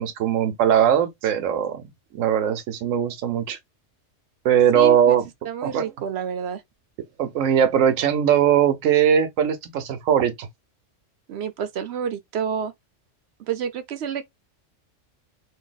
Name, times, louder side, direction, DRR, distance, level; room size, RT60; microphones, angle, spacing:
voice 1, 0.0-1.8 2.1-3.6 4.4-5.3 5.6-5.9 7.2-10.5, right 9 dB, 85° right, 1.1 m, -20 dB
voice 2, 4.7-5.2 5.4-6.6 11.3-12.7 13.5-14.3, right 7 dB, 65° right, 0.7 m, -29 dB
2.7 x 2.6 x 3.9 m
omnidirectional pair, 1.3 m